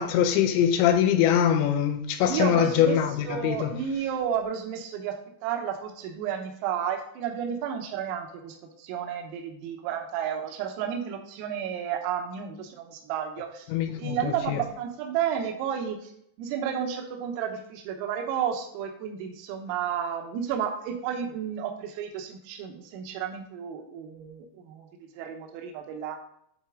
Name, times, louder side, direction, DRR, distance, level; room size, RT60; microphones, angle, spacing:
voice 1, 0.0-3.7 13.7-14.6, left 9 dB, 85° left, 2.6 m, -23 dB
voice 2, 2.2-3.0 3.3-5.2 5.4-13.7 14.0-16.1 16.4-24.9 25.2-26.2, right 8 dB, 85° right, 3.6 m, -32 dB
11.0 x 4.2 x 3.6 m
omnidirectional pair, 5.9 m